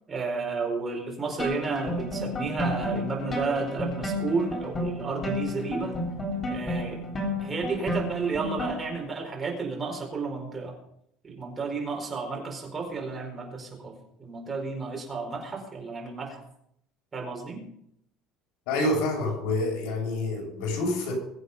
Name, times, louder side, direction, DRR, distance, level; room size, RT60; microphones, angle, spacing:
voice 1, 0.1-5.9 6.5-7.0 7.4-10.7 11.2-16.4 17.1-17.6, right 4 dB, 15° right, 4.6 m, -32 dB
sound 1, 1.4-9.0, left 1 dB, 20° left, 3.6 m, -32 dB
voice 2, 18.7-21.1, left 2 dB, 80° left, 6.6 m, -27 dB
22.5 x 8.3 x 5.5 m
cardioid pair, 165°, 0 cm